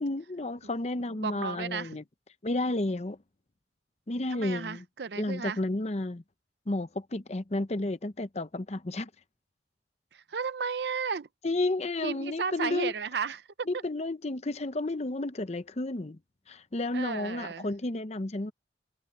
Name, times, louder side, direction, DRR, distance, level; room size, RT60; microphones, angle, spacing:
voice 1, 0.0-2.0 2.4-3.2 4.1-4.8 5.2-6.2 6.7-9.1 11.4-12.9 13.7-16.2 16.5-18.5, left 2 dB, 40° left, 0.8 m, -32 dB
voice 2, 1.2-2.0 4.3-5.6 10.1-11.3 12.0-13.5 16.9-17.7, right 6 dB, 70° right, 0.6 m, -34 dB
head